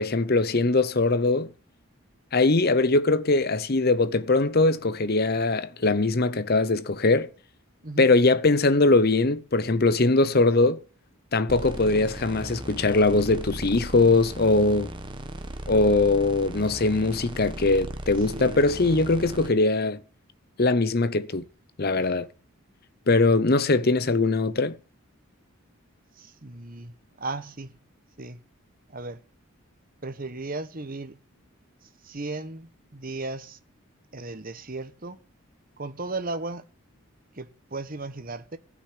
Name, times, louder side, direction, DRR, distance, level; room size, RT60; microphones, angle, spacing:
voice 1, 0.0-1.5 2.3-7.3 8.0-10.8 11.3-14.9 15.7-20.0 20.6-21.4 21.8-22.3 23.1-24.8, left 3 dB, 45° left, 0.8 m, -21 dB
sound 1, 11.5-19.5, right 1 dB, 20° right, 1.3 m, -37 dB
voice 2, 18.3-18.8 26.2-26.9 27.2-27.7 28.2-28.4 28.9-29.2 30.0-31.2 32.0-33.6 34.1-35.2 35.8-36.6 37.4-38.6, right 2 dB, 40° right, 1.1 m, -35 dB
15.5 x 6.2 x 10.0 m
head